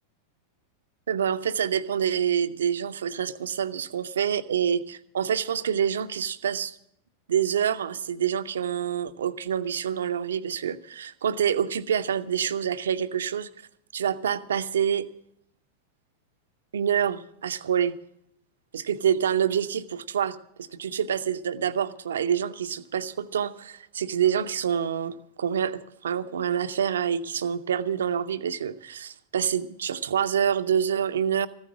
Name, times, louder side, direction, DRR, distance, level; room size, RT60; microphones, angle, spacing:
voice 1, 1.1-6.8 7.3-13.5 13.9-15.1 16.7-18.0 18.7-31.5, right 8 dB, 65° right, 12 dB, 0.7 m, -27 dB
14.5 x 9.7 x 7.5 m, 0.72 s
figure-of-eight pair, 90°, 0 cm